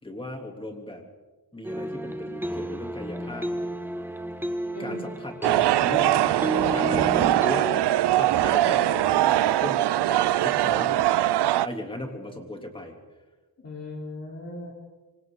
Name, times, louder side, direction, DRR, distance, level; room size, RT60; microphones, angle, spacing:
voice 1, 0.0-1.0 1.5-3.5 4.8-5.4 5.8-6.4 6.7-11.0 11.6-13.0, left 1 dB, 15° left, 2 dB, 3.5 m, -37 dB
sound 1, 1.6-7.8, right 1 dB, 5° right, 1.3 m, -32 dB
voice 2, 4.7-5.2 6.7-7.4 13.6-14.7, left 1 dB, 40° left, -2 dB, 4.2 m, -39 dB
sound 2, 5.4-11.7, right 14 dB, 80° right, 0.6 m, -22 dB
26.5 x 25.0 x 4.1 m, 1.2 s
cardioid pair, 110°, 40 cm